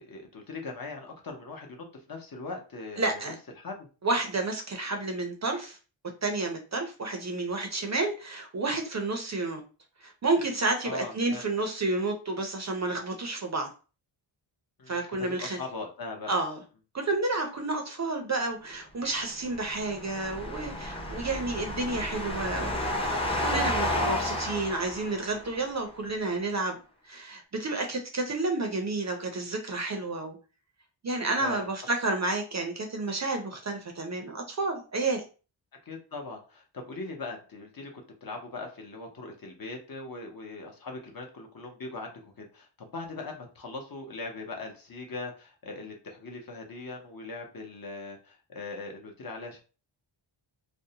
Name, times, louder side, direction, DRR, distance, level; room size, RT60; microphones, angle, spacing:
voice 1, 0.0-3.2 3.6-3.9 10.8-11.5 14.8-16.3 31.4-31.7 35.9-37.9 38.2-49.6, left 3 dB, 45° left, 2 dB, 0.7 m, -40 dB
voice 2, 3.0-3.3 4.0-5.8 6.2-9.6 10.0-13.7 14.9-15.6 16.3-16.6 16.9-22.8 23.4-26.8 27.0-30.4 31.0-35.2, right 2 dB, 35° right, 4 dB, 0.5 m, -30 dB
sound 1, 19.4-25.7, left 1 dB, 10° left, 0.5 m, -32 dB
2.6 x 2.0 x 2.7 m, 0.35 s
wide cardioid pair, 90°, 48 cm